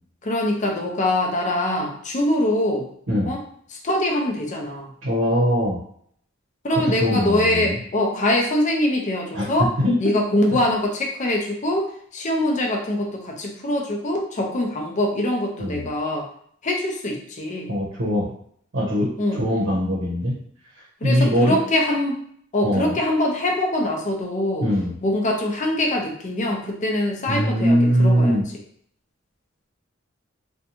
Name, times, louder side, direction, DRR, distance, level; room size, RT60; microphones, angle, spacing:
voice 1, 0.2-2.9 3.2-3.4 3.8-4.9 6.6-9.7 10.0-16.3 16.6-17.7 19.2-19.4 21.0-22.2 22.5-24.7 25.0-28.4, left 1 dB, 40° left, 0 dB, 0.5 m, -23 dB
voice 2, 5.0-5.8 6.7-7.8 9.3-9.5 9.8-10.0 10.5-10.6 15.6-15.9 17.7-18.3 18.7-20.4 21.0-21.6 22.6-23.0 24.6-24.9 27.3-28.4, equal, 85° right, -5 dB, 0.7 m, -21 dB
2.5 x 2.2 x 2.8 m, 0.64 s
head